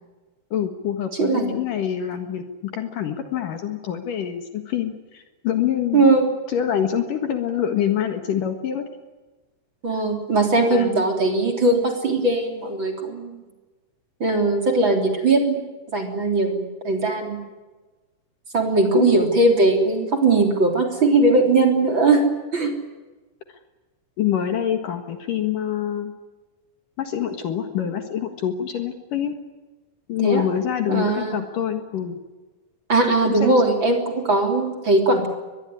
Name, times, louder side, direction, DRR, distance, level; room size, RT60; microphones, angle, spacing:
voice 1, 0.5-6.1 6.5-8.9 10.7-11.0 18.9-19.1 24.2-26.1 27.0-29.3 30.1-32.2 33.1-33.6, left 9 dB, 60° left, 7 dB, 3.0 m, -26 dB
voice 2, 1.2-1.5 5.9-6.3 9.8-13.4 14.2-15.6 15.9-17.4 18.5-22.2 22.5-22.7 30.2-30.4 30.9-31.4 32.9-35.3, right 2 dB, 30° right, 3 dB, 3.8 m, -19 dB
23.5 x 21.0 x 9.8 m, 1.2 s
omnidirectional pair, 4.7 m